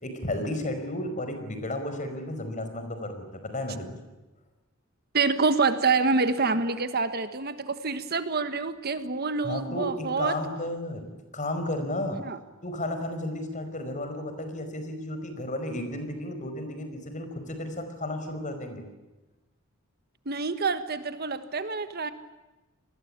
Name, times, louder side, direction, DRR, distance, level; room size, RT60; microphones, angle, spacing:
voice 1, 0.0-4.0 9.4-11.1 11.3-12.2 12.6-18.8, left 1 dB, 35° left, 7 dB, 5.1 m, -33 dB
voice 2, 5.1-10.4 12.2-12.4 20.2-22.1, right 4 dB, 50° right, 10 dB, 1.5 m, -27 dB
28.0 x 20.5 x 8.9 m, 1.1 s
head